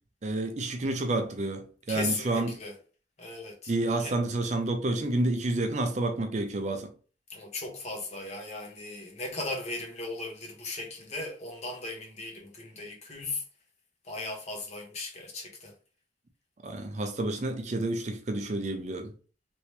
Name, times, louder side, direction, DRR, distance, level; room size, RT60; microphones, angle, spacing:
voice 1, 0.2-2.6 3.7-6.9 16.6-19.1, right 2 dB, 35° right, 0.4 m, -29 dB
voice 2, 1.9-2.8 3.2-3.7 4.0-4.2 7.3-13.4 14.0-15.7, left 2 dB, 35° left, 0.9 m, -37 dB
3.0 x 2.8 x 3.1 m
head